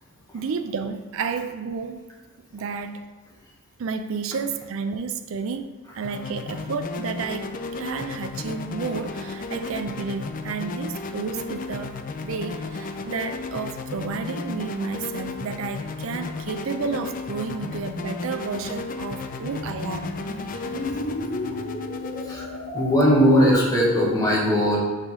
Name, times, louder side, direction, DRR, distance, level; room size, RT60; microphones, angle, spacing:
voice 1, 0.3-2.0 2.5-3.0 3.8-5.7 5.9-20.1, right 5 dB, 60° right, 7 dB, 0.4 m, -31 dB
sound 1, 6.0-23.8, left 4 dB, 40° left, 0.4 m, -34 dB
sound 2, 18.6-23.5, equal, 80° left, 1.0 m, -34 dB
voice 2, 22.7-24.8, equal, 15° left, -4 dB, 1.3 m, -19 dB
4.8 x 3.7 x 5.5 m, 1.4 s
head